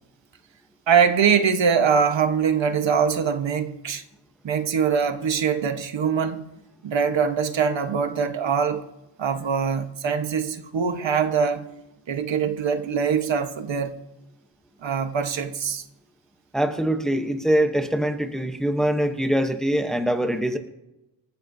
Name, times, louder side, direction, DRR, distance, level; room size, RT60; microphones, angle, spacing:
voice 1, 0.9-4.0 4.4-6.5 6.8-8.9 9.2-11.7 12.1-14.0 14.8-15.8, right 6 dB, 70° right, 1.3 m, -23 dB
voice 2, 16.5-20.6, right 1 dB, ahead, 0.9 m, -23 dB
27.0 x 14.5 x 2.7 m
wide cardioid pair, 170°, 46 cm